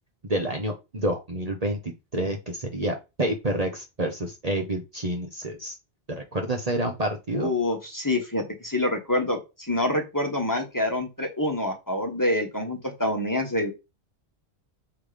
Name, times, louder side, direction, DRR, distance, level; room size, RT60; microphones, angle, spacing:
voice 1, 0.2-5.8 6.1-7.5, right 1 dB, 35° right, 2 dB, 1.1 m, -28 dB
voice 2, 7.3-13.7, left 1 dB, 15° left, 2 dB, 1.5 m, -26 dB
5.8 x 3.4 x 5.1 m, 0.25 s
omnidirectional pair, 1.1 m